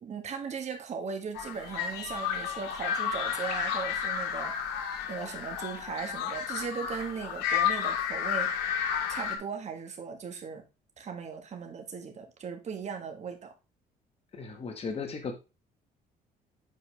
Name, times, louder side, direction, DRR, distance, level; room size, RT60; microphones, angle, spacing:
voice 1, 0.0-4.5 5.1-8.8 9.1-10.7 11.0-13.5, right 6 dB, 40° right, 5 dB, 1.8 m, -38 dB
sound 1, 1.3-9.4, left 8 dB, 90° left, 1.4 m, -32 dB
voice 2, 14.3-15.4, left 4 dB, 35° left, 5 dB, 1.7 m, -36 dB
7.9 x 4.8 x 3.5 m, 0.28 s
cardioid pair, 110°, 17 cm